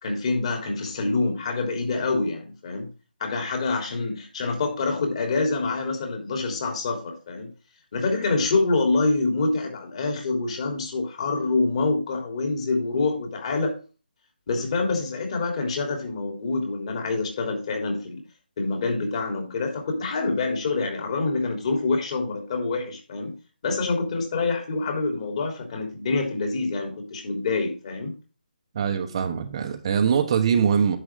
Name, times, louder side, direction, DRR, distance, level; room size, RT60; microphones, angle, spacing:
voice 1, 0.0-2.9 3.2-7.5 7.9-13.8 14.5-18.2 18.6-23.3 23.6-28.1, left 3 dB, 40° left, 3 dB, 3.2 m, -26 dB
voice 2, 28.7-31.0, right 7 dB, 35° right, 5 dB, 1.0 m, -22 dB
10.0 x 7.0 x 3.6 m, 0.33 s
hypercardioid pair, 165°, 5 cm